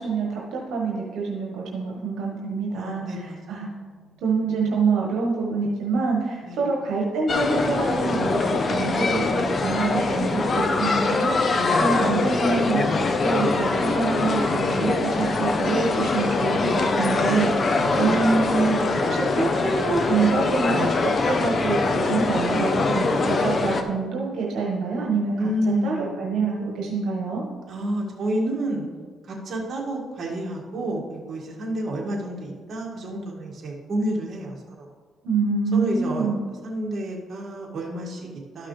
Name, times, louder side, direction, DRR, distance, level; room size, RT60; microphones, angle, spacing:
voice 1, 0.0-3.7 4.2-25.5 25.8-27.4 35.2-36.4, right 4 dB, 85° right, -2 dB, 1.4 m, -26 dB
voice 2, 2.7-4.2 6.4-6.6 11.5-11.9 17.6-18.1 25.4-26.2 27.7-28.9 29.2-34.9 35.7-36.3 36.6-38.7, right 1 dB, 50° right, -2 dB, 2.0 m, -30 dB
sound 1, 7.3-23.8, left 3 dB, 40° left, 0.8 m, -23 dB
12.5 x 5.8 x 3.3 m, 1.5 s
cardioid pair, 90°, 0 cm